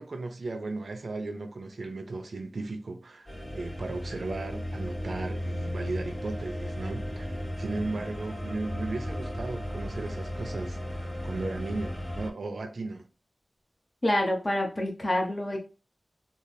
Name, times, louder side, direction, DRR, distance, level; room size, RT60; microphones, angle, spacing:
voice 1, 0.0-13.0, right 3 dB, 75° right, 0.5 m, -36 dB
sound 1, 3.3-12.3, equal, 15° left, 1.6 m, -35 dB
voice 2, 14.0-15.6, left 1 dB, 30° left, 0.9 m, -27 dB
3.2 x 2.1 x 4.0 m
wide cardioid pair, 75°, 0 cm